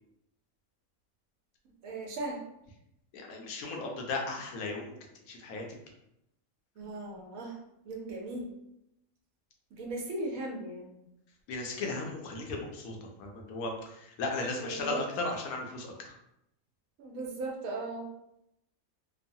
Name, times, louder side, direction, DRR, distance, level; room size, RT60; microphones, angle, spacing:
voice 1, 1.8-2.4 6.8-7.6 7.8-8.5 9.7-11.1 14.6-15.0 17.0-18.1, right 2 dB, 70° right, -1 dB, 1.0 m, -38 dB
voice 2, 3.1-4.9 5.3-5.6 11.5-16.1, left 3 dB, 75° left, 1 dB, 1.0 m, -36 dB
3.0 x 2.1 x 2.6 m, 0.81 s
omnidirectional pair, 1.5 m